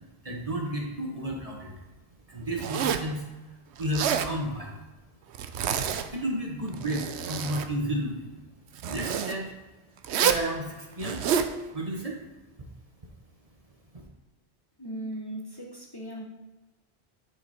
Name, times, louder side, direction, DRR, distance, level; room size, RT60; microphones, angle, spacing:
voice 1, 0.2-1.7 2.3-4.8 6.1-8.3 8.8-9.5 10.2-11.3 11.7-12.2 13.9-14.0, right 1 dB, 35° right, -1 dB, 1.3 m, -32 dB
Zipper (clothing), 2.6-3.1 3.8-4.3 5.3-6.1 6.7-7.7 8.8-9.3 10.0-10.5 11.0-11.5, right 8 dB, 90° right, 0.9 m, -28 dB
voice 2, 14.8-16.2, right 1 dB, 20° left, -2 dB, 1.2 m, -38 dB
10.0 x 5.5 x 4.4 m, 1.2 s
omnidirectional pair, 1.1 m